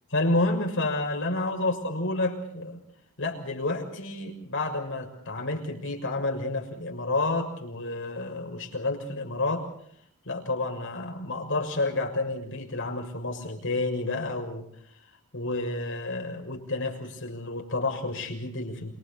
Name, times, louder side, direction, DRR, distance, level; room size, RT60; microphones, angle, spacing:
voice 1, 0.1-2.8 3.2-9.7 10.2-14.7 15.3-18.9, left 2 dB, 60° left, 4 dB, 6.6 m, -30 dB
29.0 x 28.5 x 4.2 m, 0.67 s
head